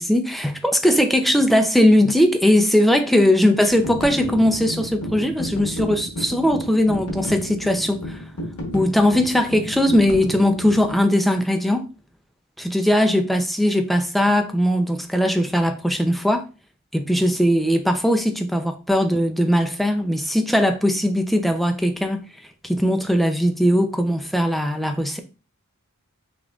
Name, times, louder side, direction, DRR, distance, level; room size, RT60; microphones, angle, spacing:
voice 1, 0.0-8.2 8.7-11.9 12.6-16.5 16.9-22.2 22.6-25.2, left 1 dB, ahead, 0.5 m, -19 dB
sound 1, 3.7-11.0, equal, 75° left, 1.1 m, -32 dB
6.1 x 3.1 x 2.4 m
head